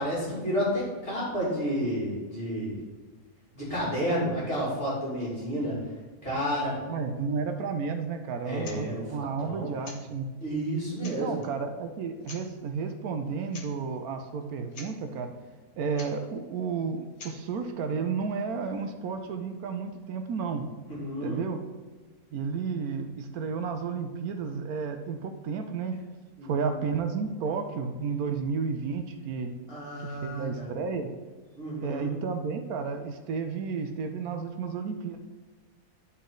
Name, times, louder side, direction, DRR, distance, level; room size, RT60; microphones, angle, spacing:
voice 1, 0.0-2.8 3.5-5.8 6.2-7.0 8.4-9.7 10.4-11.4 20.9-21.4 26.4-26.8 29.7-30.7 31.6-32.1, equal, 40° left, -8 dB, 2.8 m, -31 dB
voice 2, 6.9-10.3 11.0-15.3 15.8-20.7 21.2-21.6 22.3-26.0 26.4-29.5 30.0-31.1 31.8-35.2, right 5 dB, 75° right, 7 dB, 1.2 m, -32 dB
sound 1, 8.6-8.8 9.8-10.0 10.6-10.7 11.0-11.5 12.2-12.5 13.5-13.7 14.0-14.1 14.4-14.5 14.7-15.0 15.9-16.1 17.2-17.4, left 4 dB, 70° left, 1.7 m, -45 dB
11.0 x 4.2 x 3.8 m, 1.4 s
omnidirectional pair, 1.6 m